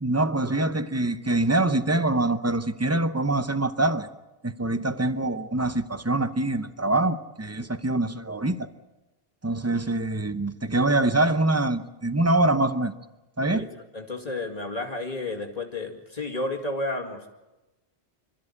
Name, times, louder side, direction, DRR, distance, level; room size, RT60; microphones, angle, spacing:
voice 1, 0.0-4.1 4.4-8.7 9.4-12.9 13.4-13.7, right 2 dB, 15° right, 11 dB, 0.8 m, -24 dB
voice 2, 13.9-17.3, left 2 dB, 35° left, 0 dB, 2.2 m, -31 dB
26.5 x 13.5 x 9.8 m, 1.1 s
omnidirectional pair, 1.1 m